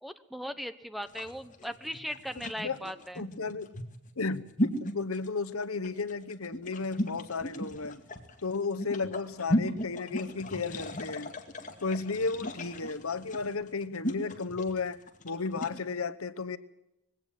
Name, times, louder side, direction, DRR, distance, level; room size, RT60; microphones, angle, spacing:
voice 1, 0.0-3.2, equal, ahead, 11 dB, 0.9 m, -38 dB
sound 1, 1.0-15.8, equal, 35° left, 2.2 m, -35 dB
voice 2, 2.4-2.8 3.2-3.7 4.2-8.0 8.4-11.3 11.8-15.0 15.2-16.6, left 4 dB, 90° left, 13 dB, 1.1 m, -34 dB
21.0 x 17.5 x 7.7 m, 0.88 s
head